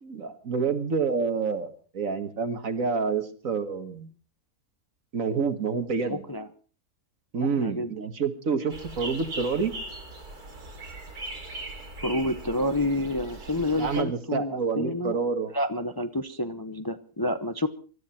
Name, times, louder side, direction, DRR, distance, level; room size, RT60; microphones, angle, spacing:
voice 1, 0.0-4.1 5.1-6.2 7.3-9.7 13.8-15.5, right 5 dB, 60° right, 9 dB, 2.0 m, -28 dB
voice 2, 6.1-6.5 7.4-7.9 12.0-15.2 15.5-17.7, left 1 dB, 20° left, 9 dB, 0.8 m, -29 dB
sound 1, 8.7-14.0, right 2 dB, 80° right, 3.8 m, -39 dB
24.0 x 13.5 x 4.3 m, 0.39 s
omnidirectional pair, 1.6 m